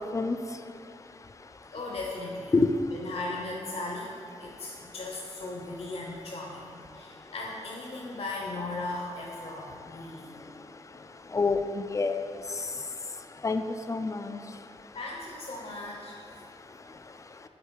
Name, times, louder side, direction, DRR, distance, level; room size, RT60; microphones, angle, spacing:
voice 1, 1.7-2.5 2.9-10.4 11.3-11.4 14.9-16.2, left 2 dB, 60° left, -2 dB, 0.8 m, -37 dB
voice 2, 11.3-12.2 13.4-13.6 13.9-14.4, left 3 dB, 25° left, 8 dB, 0.3 m, -26 dB
8.1 x 3.9 x 4.5 m, 2.3 s
wide cardioid pair, 115°, 12 cm